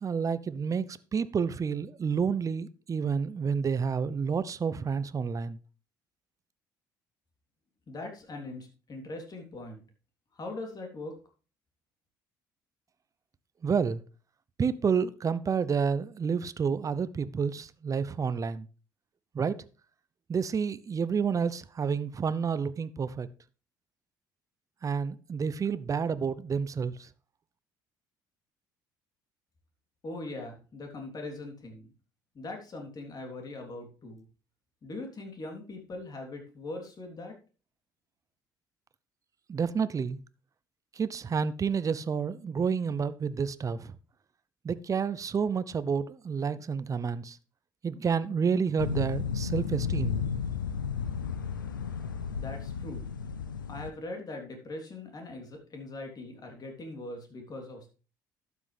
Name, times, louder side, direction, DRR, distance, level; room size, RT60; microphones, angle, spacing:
voice 1, 0.0-0.9 1.1-5.6 13.6-14.0 14.6-18.7 19.3-19.5 20.3-23.3 24.8-26.9 39.5-40.2 41.0-43.8 44.6-47.4 47.8-50.2, right 6 dB, 30° right, 0.7 m, -29 dB
voice 2, 7.9-9.8 10.3-11.2 30.0-31.9 32.3-34.3 34.8-37.4 52.4-53.1 53.7-57.9, left 2 dB, 40° left, 3.4 m, -41 dB
sound 1, 48.8-53.9, left 6 dB, 85° left, 0.5 m, -33 dB
12.0 x 8.2 x 3.4 m
figure-of-eight pair, 50°, 10 cm